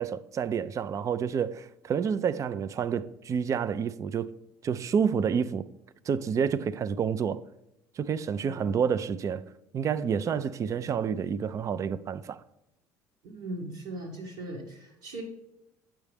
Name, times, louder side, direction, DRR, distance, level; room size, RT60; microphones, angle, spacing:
voice 1, 0.0-4.3 4.6-5.7 6.0-7.4 8.0-9.4 9.7-12.4, right 7 dB, 40° right, 0.5 m, -29 dB
voice 2, 13.2-15.2, right 2 dB, 85° right, 1.8 m, -39 dB
8.8 x 7.3 x 3.4 m
supercardioid pair, 75°, 8 cm